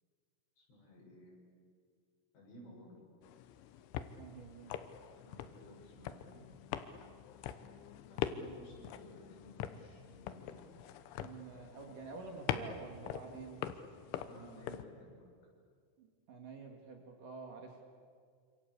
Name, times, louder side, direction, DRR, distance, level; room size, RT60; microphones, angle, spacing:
voice 1, 0.6-1.4 2.3-3.0 5.1-6.4 8.1-10.7 14.3-15.3, left 1 dB, 65° left, -2 dB, 9.5 m, -55 dB
sound 1, 3.2-14.8, left 10 dB, 80° left, 3.4 m, -44 dB
voice 2, 4.2-4.7 11.2-13.6 16.0-17.8, right 4 dB, 50° right, 2 dB, 3.3 m, -48 dB
26.5 x 26.5 x 8.2 m, 2.1 s
omnidirectional pair, 5.5 m